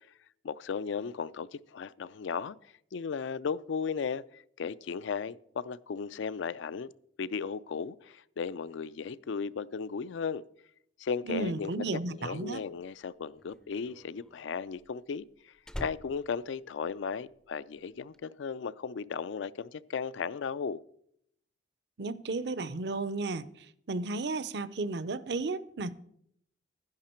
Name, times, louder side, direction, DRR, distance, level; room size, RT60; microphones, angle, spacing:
voice 1, 0.4-6.9 7.2-10.4 11.0-20.8, left 6 dB, 80° left, 0.4 m, -36 dB
voice 2, 11.3-12.6 22.0-25.9, right 3 dB, 60° right, 0.6 m, -34 dB
Slam, 12.8-17.5 17.7-18.2, equal, 5° left, 0.4 m, -46 dB
11.5 x 10.5 x 4.4 m
head